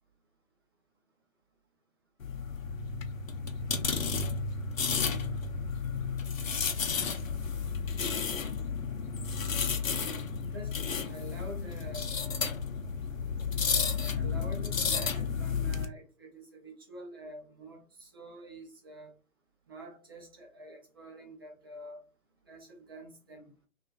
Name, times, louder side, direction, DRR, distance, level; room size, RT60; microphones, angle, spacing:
sound 1, 2.2-15.9, left 5 dB, 65° left, 0.8 m, -32 dB
voice 1, 10.4-12.1 14.1-19.1 19.7-22.0 22.5-23.5, right 1 dB, 15° right, -1 dB, 0.6 m, -47 dB
6.0 x 2.5 x 2.3 m, 0.32 s
hypercardioid pair, 150°, 43 cm